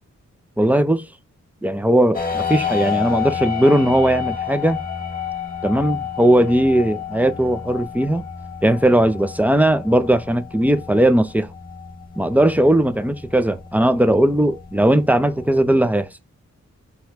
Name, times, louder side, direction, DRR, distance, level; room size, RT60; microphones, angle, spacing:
voice 1, 0.6-1.1 1.6-4.8 5.6-8.2 8.6-11.5 12.2-16.1, right 1 dB, 5° right, 0.5 m, -18 dB
sound 1, 2.1-15.8, left 8 dB, 30° left, 1.4 m, -30 dB
4.5 x 3.5 x 3.4 m
wide cardioid pair, 115°, 29 cm